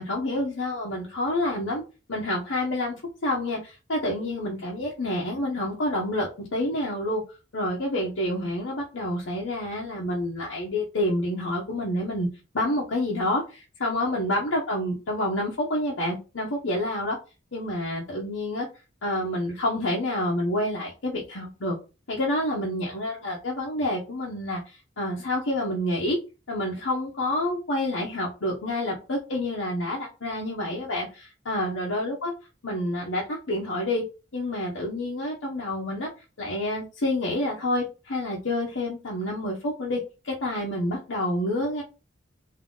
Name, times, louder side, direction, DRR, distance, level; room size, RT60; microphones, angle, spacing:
voice 1, 0.0-1.8 2.1-3.0 3.2-7.2 7.5-12.3 12.5-17.2 17.5-18.7 19.0-21.8 22.1-26.2 26.5-32.3 32.6-34.0 34.3-36.1 36.4-41.8, left 1 dB, 75° left, -3 dB, 0.9 m, -28 dB
3.7 x 2.8 x 3.8 m, 0.32 s
head